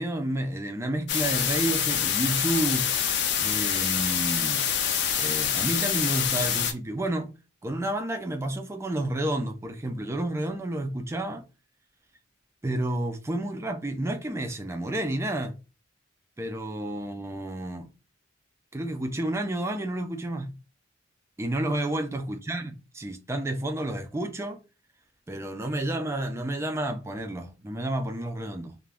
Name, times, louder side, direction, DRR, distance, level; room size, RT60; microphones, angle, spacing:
voice 1, 0.0-2.9 3.4-4.7 5.1-7.3 7.6-11.5 12.6-15.6 16.4-17.9 18.7-20.5 21.4-24.6 25.3-28.8, right 1 dB, 15° right, 0.4 m, -30 dB
sound 1, 1.1-6.7, left 8 dB, 55° left, 0.4 m, -26 dB
2.4 x 2.1 x 3.3 m
head